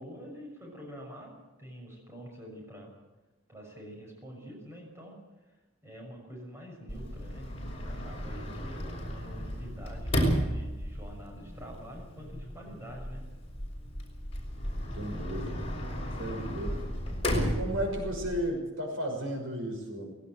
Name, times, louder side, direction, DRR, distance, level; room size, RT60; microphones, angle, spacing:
voice 1, 0.0-2.9 3.5-5.2 5.8-7.5 7.8-13.2, equal, 15° right, -1 dB, 6.2 m, -46 dB
Sliding door, 6.9-18.4, equal, 30° left, 5.3 m, -34 dB
voice 2, 14.9-15.7 16.2-16.8 17.3-20.1, equal, 80° right, 3 dB, 6.0 m, -34 dB
19.0 x 17.5 x 7.9 m, 1.1 s
head